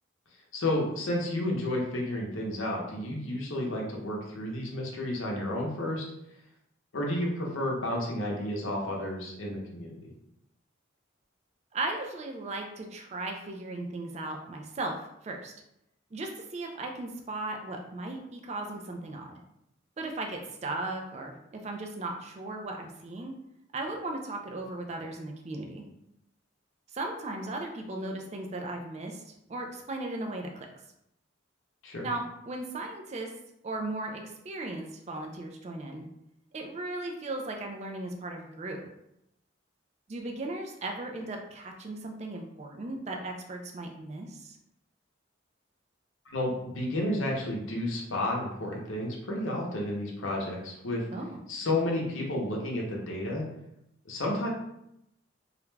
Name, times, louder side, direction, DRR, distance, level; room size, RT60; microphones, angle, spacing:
voice 1, 0.5-6.0 6.9-10.1 31.8-32.1 46.3-51.1 51.5-53.5 54.1-54.5, left 1 dB, 80° left, -1 dB, 0.7 m, -31 dB
voice 2, 11.7-14.9 15.2-15.5 16.1-19.4 20.0-23.3 23.7-25.9 26.9-30.7 32.0-33.3 33.6-36.1 36.5-38.8 40.1-44.6 51.1-51.4, right 2 dB, 35° right, 2 dB, 0.3 m, -37 dB
2.4 x 2.2 x 3.1 m, 0.80 s
head